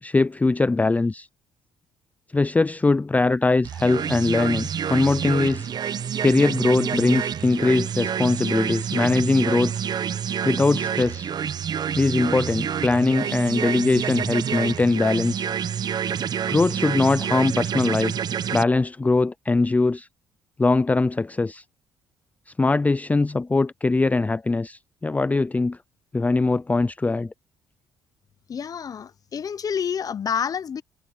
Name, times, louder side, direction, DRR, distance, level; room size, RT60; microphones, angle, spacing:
voice 1, 0.0-1.3 2.3-5.7 6.2-9.7 10.4-11.3 12.0-15.5 16.5-18.1 18.5-20.1 20.6-21.6 22.6-25.8 26.1-27.3, left 3 dB, 20° left, 0.5 m, -21 dB
sound 1, 3.6-18.6, right 8 dB, 55° right, 1.2 m, -28 dB
voice 2, 28.5-30.8, left 7 dB, 45° left, 0.8 m, -28 dB
supercardioid pair, 65°, 8 cm